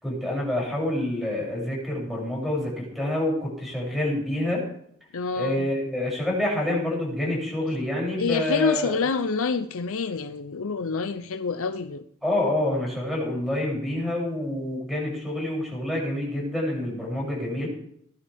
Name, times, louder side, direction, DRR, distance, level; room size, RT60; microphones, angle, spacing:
voice 1, 0.0-4.6 5.4-8.9 12.2-17.7, left 1 dB, ahead, 7.3 m, -27 dB
voice 2, 5.1-5.7 8.1-12.0, left 5 dB, 65° left, 0.6 m, -27 dB
20.0 x 11.0 x 3.6 m
head